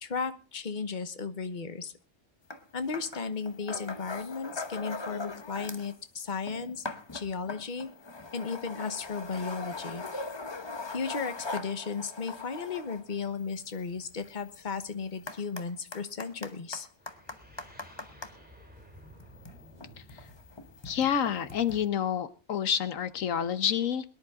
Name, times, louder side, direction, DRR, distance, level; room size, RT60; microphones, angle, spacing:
voice 1, 0.0-1.9 2.7-6.8 7.1-7.9 8.3-10.1 10.9-16.9, left 5 dB, 40° left, 10 dB, 1.1 m, -35 dB
sound 1, 2.5-2.6 2.9-6.0 6.3-18.3 19.1-21.9, left 3 dB, 25° left, 0.9 m, -41 dB
sound 2, 17.0-21.8, equal, 5° right, 3.2 m, -54 dB
voice 2, 20.8-24.0, left 8 dB, 80° left, 14 dB, 1.3 m, -28 dB
22.5 x 10.5 x 3.6 m, 0.32 s
omnidirectional pair, 1.4 m